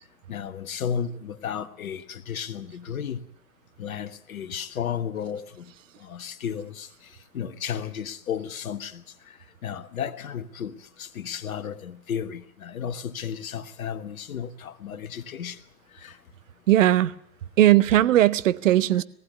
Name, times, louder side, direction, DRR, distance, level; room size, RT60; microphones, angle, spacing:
voice 1, 0.3-3.2 3.8-5.7 6.0-6.9 7.3-9.0 9.6-15.6 16.0-16.2, left 8 dB, 65° left, 1.7 m, -33 dB
voice 2, 16.7-17.1 17.6-19.0, right 13 dB, 55° right, 1.0 m, -18 dB
19.5 x 15.5 x 9.5 m
hypercardioid pair, 120°, 45 cm